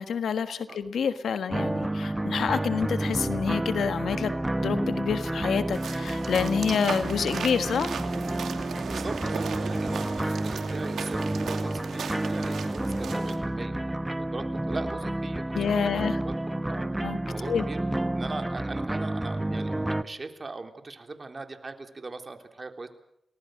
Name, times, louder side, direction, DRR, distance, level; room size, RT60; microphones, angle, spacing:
voice 1, 0.0-8.0 15.6-16.2 17.0-17.2 17.5-17.6, left 6 dB, 85° left, 10 dB, 1.5 m, -28 dB
sound 1, 1.5-20.0, right 1 dB, 15° right, 1.3 m, -30 dB
sound 2, 5.7-13.4, right 6 dB, 90° right, 2.5 m, -37 dB
voice 2, 8.9-13.8 14.1-15.4 15.7-16.9 17.2-17.8 18.1-22.9, right 3 dB, 40° right, 6 dB, 3.5 m, -40 dB
29.5 x 19.5 x 6.5 m, 0.76 s
cardioid pair, 60°, 0 cm